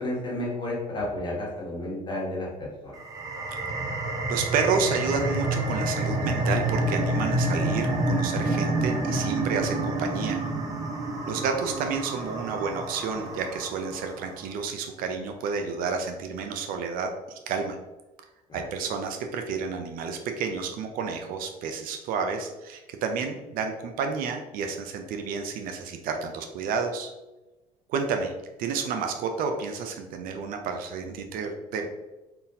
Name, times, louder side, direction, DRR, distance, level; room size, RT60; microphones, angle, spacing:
voice 1, 0.0-2.9 18.5-18.6, left 1 dB, 30° left, -3 dB, 1.2 m, -32 dB
sound 1, 2.9-14.1, right 1 dB, 25° right, 0.6 m, -28 dB
voice 2, 4.3-10.4 11.3-17.8 18.5-27.1 27.9-28.3 28.6-31.9, right 5 dB, 70° right, 5 dB, 0.5 m, -30 dB
3.7 x 2.3 x 2.7 m, 1.0 s
cardioid pair, 110°, 15 cm